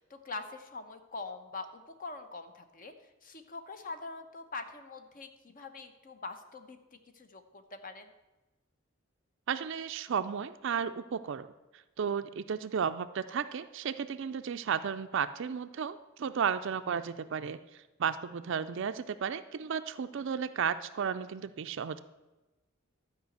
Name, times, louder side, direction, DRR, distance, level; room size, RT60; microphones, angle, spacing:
voice 1, 0.0-8.1, left 3 dB, 40° left, 8 dB, 0.9 m, -44 dB
voice 2, 9.5-11.5 11.7-22.0, right 7 dB, 60° right, 10 dB, 0.4 m, -34 dB
12.0 x 5.0 x 7.9 m, 1.1 s
head